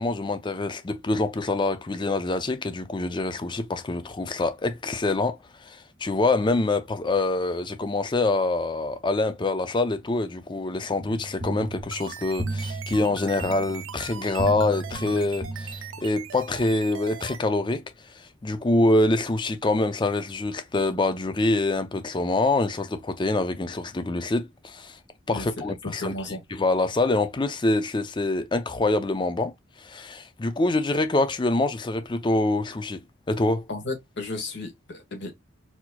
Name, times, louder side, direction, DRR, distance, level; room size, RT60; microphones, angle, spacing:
voice 1, 0.0-17.8 18.2-25.0 25.3-26.1 26.5-29.5 29.8-33.0 33.3-33.7, left 2 dB, 25° left, 0.5 m, -25 dB
sound 1, 11.0-16.3, right 2 dB, 30° right, 0.8 m, -35 dB
sound 2, 11.7-17.4, right 8 dB, 70° right, 0.6 m, -40 dB
voice 2, 25.8-26.4 33.7-35.3, left 2 dB, 60° left, 1.5 m, -33 dB
4.3 x 2.9 x 2.2 m
head